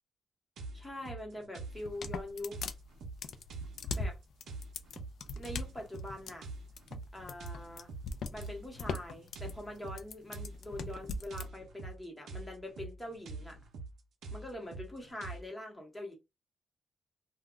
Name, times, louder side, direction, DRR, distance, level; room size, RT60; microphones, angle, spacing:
sound 1, 0.6-15.4, right 3 dB, 65° right, 0.6 m, -46 dB
voice 1, 0.7-2.6 3.9-4.2 5.4-6.5 7.1-7.9 8.3-13.6 14.3-16.1, left 1 dB, 10° left, 0.9 m, -43 dB
sound 2, 1.7-11.5, left 3 dB, 60° left, 0.3 m, -40 dB
2.2 x 2.1 x 3.6 m
wide cardioid pair, 170°, 0 cm